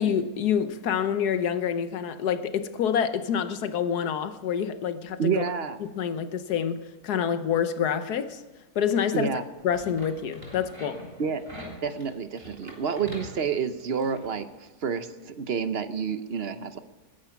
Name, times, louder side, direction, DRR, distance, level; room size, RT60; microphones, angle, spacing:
voice 1, 0.0-5.5 5.8-8.4 8.7-9.3 9.6-11.0, left 8 dB, 85° left, 1.4 m, -27 dB
voice 2, 5.2-5.8 9.1-9.4 11.2-11.4 11.8-16.8, right 6 dB, 50° right, 0.9 m, -29 dB
sound 1, 9.6-14.4, left 1 dB, 15° right, 3.4 m, -44 dB
19.5 x 10.5 x 5.8 m
omnidirectional pair, 1.6 m